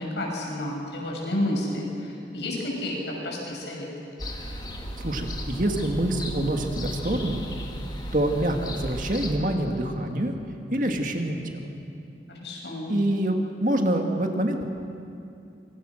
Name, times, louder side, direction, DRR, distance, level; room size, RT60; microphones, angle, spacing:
voice 1, 0.0-3.0 3.2-3.9 12.3-12.9, left 1 dB, 85° left, -2 dB, 6.9 m, -30 dB
sound 1, 4.2-9.3, equal, 25° left, 2.0 m, -35 dB
voice 2, 5.0-7.5 8.1-10.3 10.7-11.6 12.9-14.6, right 1 dB, 45° right, 3 dB, 2.0 m, -26 dB
25.5 x 23.5 x 6.5 m, 2.6 s
head